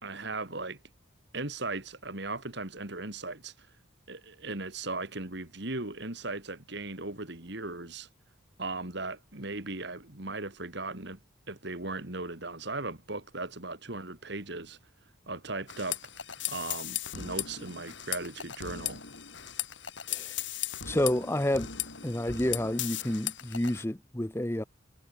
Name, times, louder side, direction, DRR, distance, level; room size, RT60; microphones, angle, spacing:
voice 1, 0.0-0.8 1.3-3.7 4.1-8.1 8.6-11.2 11.5-14.8 15.3-16.0 16.5-19.0, right 2 dB, 55° right, 2.6 m, -37 dB
sound 1, 15.7-23.8, left 11 dB, 65° left, 3.8 m, -37 dB
voice 2, 20.9-21.7 22.0-24.6, left 1 dB, 10° left, 0.8 m, -29 dB
head